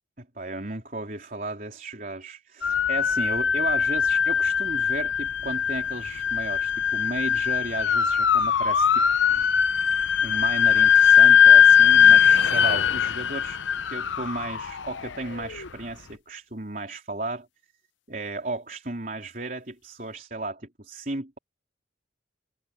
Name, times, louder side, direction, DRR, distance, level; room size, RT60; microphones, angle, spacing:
voice 1, 0.2-9.5 10.2-17.5 18.1-21.4, right 2 dB, 45° right, 3.8 m, -34 dB
sound 1, 2.6-15.7, left 8 dB, 80° left, 0.7 m, -20 dB
head